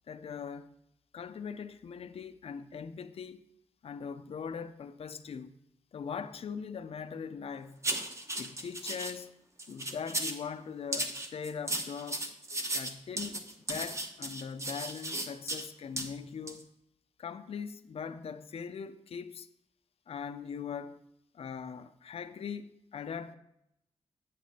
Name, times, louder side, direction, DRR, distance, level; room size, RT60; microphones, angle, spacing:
voice 1, 0.1-0.7 1.1-3.4 3.8-5.6 5.9-7.9 8.4-9.3 9.7-12.3 12.7-13.4 13.7-16.7 17.2-19.5 20.1-21.0 21.3-23.3, left 6 dB, 55° left, 0.5 m, -41 dB
sound 1, 7.8-9.1 9.6-10.4 10.9-15.6 16.0-16.1 16.5-16.6, right 1 dB, 25° right, 0.9 m, -35 dB
8.4 x 8.2 x 4.2 m
wide cardioid pair, 155°, 12 cm